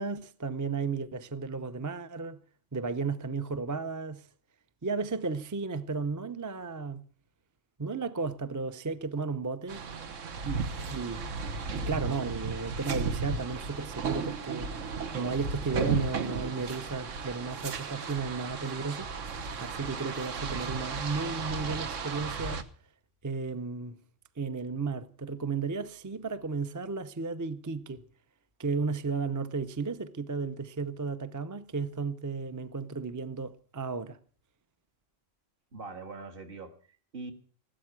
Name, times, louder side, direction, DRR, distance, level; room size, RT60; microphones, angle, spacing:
voice 1, 0.0-2.4 2.7-4.3 4.8-7.0 7.8-9.8 10.4-10.6 10.9-11.3 11.7-14.7 15.1-19.1 19.6-22.7 23.2-24.0 24.4-28.0 28.6-34.2, right 4 dB, 25° right, 0.4 m, -34 dB
sound 1, 9.7-22.6, right 4 dB, 90° right, 1.4 m, -35 dB
voice 2, 35.7-37.3, right 3 dB, 50° right, 1.9 m, -43 dB
15.5 x 12.5 x 6.0 m
omnidirectional pair, 1.3 m